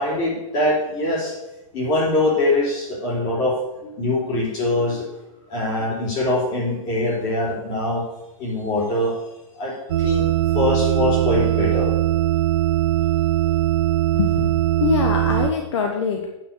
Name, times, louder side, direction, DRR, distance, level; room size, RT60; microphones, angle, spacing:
voice 1, 0.0-1.3 1.7-3.5 3.8-5.0 5.5-8.0 8.4-9.1 9.5-9.7 10.0-10.2 10.5-11.9 13.4-13.5, left 2 dB, 20° left, -3 dB, 3.5 m, -22 dB
sound 1, 9.9-15.5, right 14 dB, 45° right, 0.6 m, -20 dB
voice 2, 14.1-14.5 14.8-16.3, left 7 dB, 55° left, 3 dB, 1.2 m, -23 dB
9.1 x 6.4 x 6.8 m, 0.96 s
hypercardioid pair, 170°, 18 cm